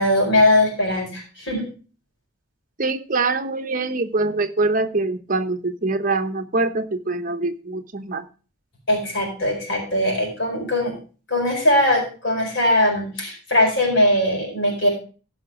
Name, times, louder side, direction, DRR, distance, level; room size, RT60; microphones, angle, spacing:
voice 1, 0.0-1.7 8.9-10.9 11.3-14.9, left 1 dB, 55° left, 1 dB, 4.5 m, -20 dB
voice 2, 2.8-8.2, right 3 dB, 40° right, 6 dB, 0.9 m, -24 dB
15.5 x 5.7 x 4.8 m, 0.37 s
head